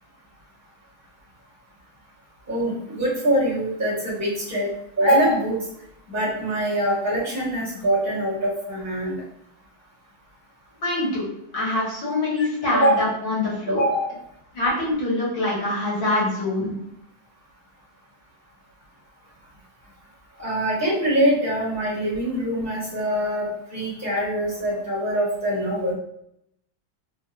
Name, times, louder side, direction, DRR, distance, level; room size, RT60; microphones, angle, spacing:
voice 1, 2.5-4.7 5.0-5.6 6.1-9.2 12.7-12.9 13.7-14.1 20.4-25.9, right 1 dB, 10° right, -8 dB, 1.0 m, -23 dB
voice 2, 10.8-11.3 11.5-13.8 14.5-16.7, left 2 dB, 65° left, -6 dB, 1.9 m, -24 dB
4.6 x 2.1 x 2.2 m, 0.75 s
omnidirectional pair, 2.2 m